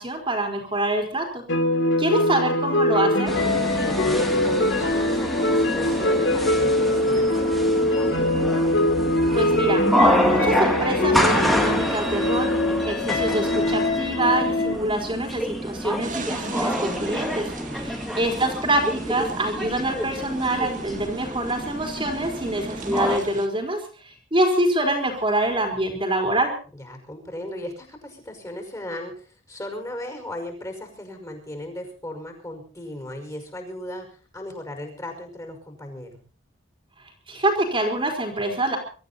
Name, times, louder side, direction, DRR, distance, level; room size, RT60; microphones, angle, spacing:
voice 1, 0.0-1.4 2.0-3.4 9.3-9.8 10.3-26.5 37.3-38.8, right 1 dB, 30° right, 2 dB, 4.2 m, -25 dB
sound 1, 1.5-14.7, left 1 dB, 75° left, 3.0 m, -22 dB
sound 2, 3.3-23.2, equal, ahead, 2.4 m, -27 dB
voice 2, 3.6-8.4 17.6-18.1 26.8-36.1, left 1 dB, 20° left, 4 dB, 5.5 m, -37 dB
sound 3, 16.0-23.5, right 3 dB, 45° right, 2.1 m, -39 dB
24.0 x 13.5 x 4.1 m, 0.39 s
head